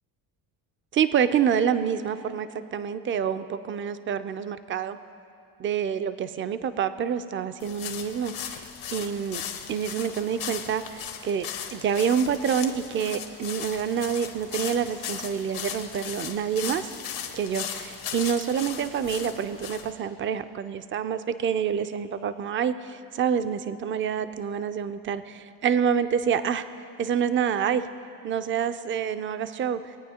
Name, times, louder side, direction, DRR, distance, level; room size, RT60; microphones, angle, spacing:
voice 1, 0.9-5.0 5.6-8.6 8.9-9.4 9.7-16.9 17.4-26.7 27.0-27.8 28.2-29.8, right 8 dB, 30° right, 12 dB, 0.3 m, -27 dB
Footsteps Dry Leaves F, 7.6-19.9, left 8 dB, 80° left, 1.1 m, -37 dB
19.5 x 9.1 x 2.8 m, 2.9 s
cardioid pair, 80°, 48 cm